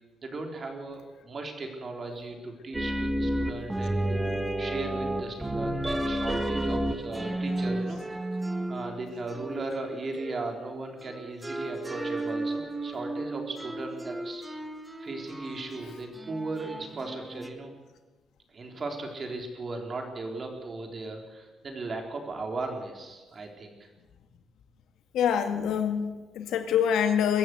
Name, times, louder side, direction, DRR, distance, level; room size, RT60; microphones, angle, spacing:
voice 1, 0.2-4.3 4.6-8.0 8.7-14.4 15.0-17.7 18.5-23.9, right 3 dB, 35° right, 3 dB, 4.0 m, -37 dB
sound 1, 2.7-10.6 11.0-17.5, right 1 dB, 10° right, 1.5 m, -32 dB
voice 2, 25.1-27.4, left 8 dB, 90° left, 6 dB, 2.0 m, -25 dB
23.0 x 14.5 x 8.0 m, 1.2 s
cardioid pair, 125°, 0 cm